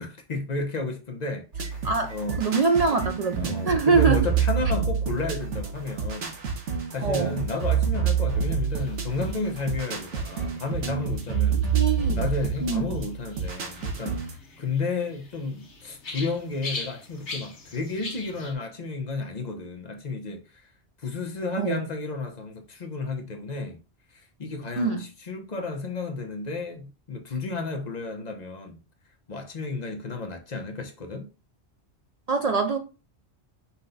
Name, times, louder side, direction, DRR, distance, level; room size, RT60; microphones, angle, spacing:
voice 1, 0.0-2.4 3.3-6.4 6.9-11.8 12.1-14.2 14.6-20.4 21.0-23.8 24.1-28.8 29.3-31.3, left 3 dB, 40° left, 0.8 m, -32 dB
sound 1, 1.5-14.4, right 7 dB, 85° right, 1.3 m, -28 dB
voice 2, 2.4-4.2 7.0-7.4 11.5-12.2 12.6-12.8 21.6-21.8 24.8-25.1 32.3-32.8, right 4 dB, 55° right, 0.4 m, -24 dB
sound 2, 8.3-18.5, left 3 dB, 75° left, 1.4 m, -43 dB
5.6 x 2.3 x 3.9 m
omnidirectional pair, 1.2 m